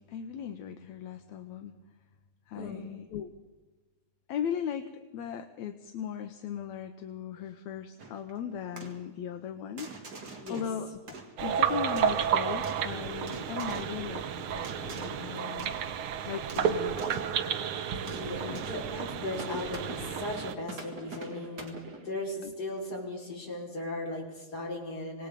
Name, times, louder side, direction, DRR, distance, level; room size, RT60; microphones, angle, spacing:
voice 1, 0.0-1.7 2.5-3.3 4.3-9.9 10.5-10.9 11.4-15.7 16.3-17.3 18.0-18.7 22.4-22.5, left 8 dB, 75° left, 7 dB, 2.1 m, -38 dB
sound 1, 8.0-8.3 8.8-9.1 9.8-10.7 11.1-11.6 12.0-12.9 13.3-14.0 14.6-15.3 15.6-15.9 16.3-17.4 18.1-18.9 19.4-20.2 20.6-22.2, right 3 dB, 35° right, 2.7 m, -45 dB
sound 2, 11.4-20.6, right 8 dB, 65° right, 1.4 m, -31 dB
voice 2, 18.0-25.3, left 2 dB, 30° left, -2 dB, 5.5 m, -37 dB
26.0 x 19.5 x 5.2 m, 1.2 s
omnidirectional pair, 3.4 m